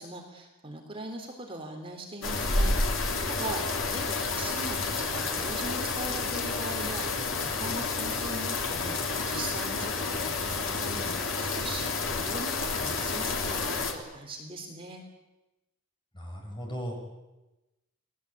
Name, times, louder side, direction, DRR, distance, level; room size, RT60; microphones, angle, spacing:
voice 1, 0.0-7.1 7.3-15.0, right 2 dB, 25° right, 2 dB, 3.5 m, -40 dB
sound 1, 2.2-13.9, left 3 dB, 65° left, 3.4 m, -30 dB
voice 2, 16.1-17.0, equal, 25° left, 0 dB, 7.5 m, -36 dB
30.0 x 19.5 x 8.6 m, 1.0 s
head